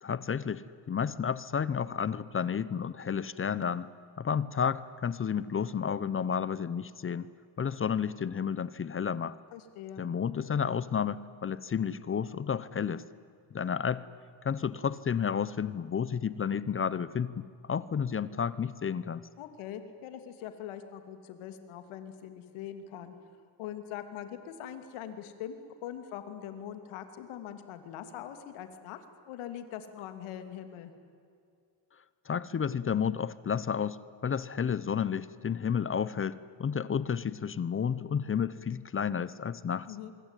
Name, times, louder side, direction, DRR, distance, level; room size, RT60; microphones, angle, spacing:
voice 1, 0.0-3.9 4.2-7.3 7.6-9.4 10.0-13.0 13.5-14.1 14.4-19.2 32.3-34.0 34.2-39.9, left 7 dB, 25° left, 18 dB, 0.8 m, -31 dB
voice 2, 9.5-10.0 19.4-23.1 23.6-30.9 39.9-40.1, left 10 dB, 85° left, 9 dB, 2.9 m, -42 dB
25.5 x 23.5 x 9.1 m, 2.4 s
cardioid pair, 125°, 48 cm